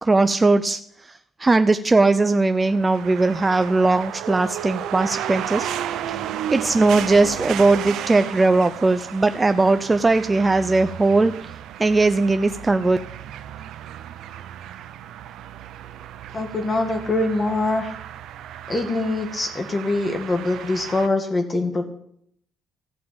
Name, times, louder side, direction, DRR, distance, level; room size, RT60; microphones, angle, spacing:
voice 1, 0.0-5.7 6.1-6.2 6.5-13.0, right 3 dB, 20° right, 10 dB, 0.5 m, -19 dB
sound 1, 2.5-21.1, right 10 dB, 85° right, 0.7 m, -34 dB
voice 2, 16.3-17.9 18.7-21.9, left 2 dB, 30° left, 5 dB, 1.7 m, -23 dB
14.0 x 5.2 x 8.7 m, 0.70 s
cardioid pair, 90°, 0 cm